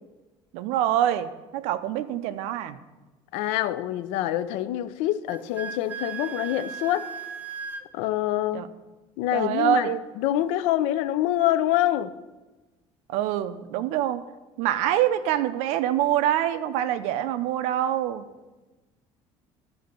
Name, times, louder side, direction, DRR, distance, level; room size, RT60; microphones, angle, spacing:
voice 1, 0.5-2.8 8.5-8.7 9.3-10.0 13.1-14.2 14.6-18.3, right 11 dB, 85° right, 0.6 m, -25 dB
voice 2, 3.3-7.1 7.9-8.7 9.2-9.9 10.2-12.1, left 13 dB, 85° left, 0.5 m, -25 dB
Wind instrument woodwind instrument, 5.3-7.9, right 7 dB, 15° right, 0.4 m, -36 dB
11.5 x 3.9 x 6.7 m
cardioid pair, 165°, 11 cm